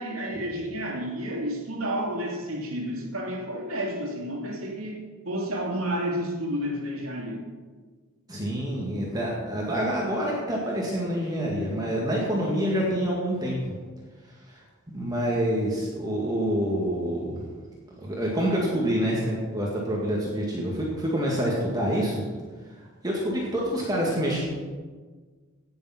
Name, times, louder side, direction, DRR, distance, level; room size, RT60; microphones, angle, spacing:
voice 1, 0.0-7.4, equal, 75° right, -1 dB, 2.9 m, -31 dB
voice 2, 8.3-13.7 14.5-14.6 14.9-17.4 18.0-22.2 23.0-24.5, equal, 20° right, -4 dB, 2.0 m, -27 dB
17.5 x 7.0 x 5.9 m, 1.5 s
head